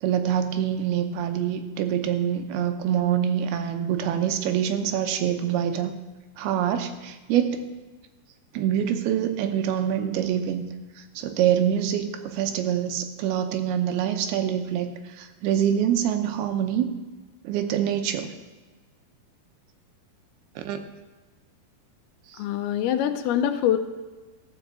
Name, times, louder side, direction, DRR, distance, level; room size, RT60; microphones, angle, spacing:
voice 1, 0.0-5.9 6.4-7.6 8.5-10.6 11.0-16.9 17.4-18.3 20.6-20.8 22.3-22.4, right 9 dB, 85° right, 7 dB, 2.7 m, -25 dB
voice 2, 22.4-23.8, left 10 dB, 85° left, 9 dB, 2.6 m, -24 dB
14.0 x 5.4 x 7.5 m, 1.2 s
omnidirectional pair, 4.5 m